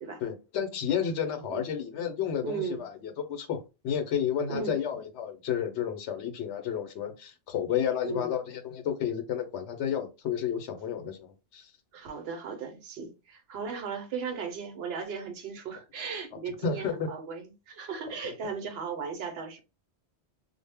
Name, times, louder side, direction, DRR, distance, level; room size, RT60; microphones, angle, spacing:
voice 1, 0.2-11.7 16.6-17.1 18.4-18.5, left 8 dB, 85° left, 0.9 m, -31 dB
voice 2, 2.4-2.8 4.5-4.8 8.0-8.3 11.9-19.6, right 6 dB, 70° right, 0.8 m, -36 dB
2.1 x 2.0 x 3.3 m
omnidirectional pair, 1.1 m